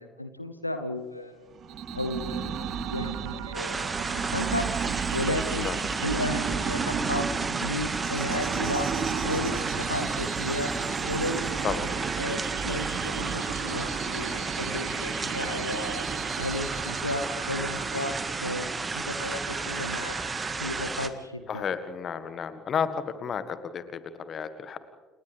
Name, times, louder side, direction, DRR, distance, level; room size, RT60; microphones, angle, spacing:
voice 1, 0.0-1.5 1.9-4.7 5.1-5.7 6.0-7.3 7.6-8.9 9.2-10.7 11.1-11.9 12.2-16.1 16.4-20.1 20.6-21.6, left 1 dB, 90° left, 8 dB, 0.9 m, -34 dB
sound 1, 1.5-20.3, right 6 dB, 45° right, 2.0 m, -35 dB
sound 2, 1.7-20.9, right 20 dB, 60° right, 0.5 m, -42 dB
sound 3, 3.5-21.1, right 3 dB, 20° right, 1.8 m, -32 dB
voice 2, 21.5-22.9 23.2-24.8, left 7 dB, 40° left, 11 dB, 1.7 m, -32 dB
29.5 x 29.0 x 3.5 m, 1.4 s
figure-of-eight pair, 55°, 0 cm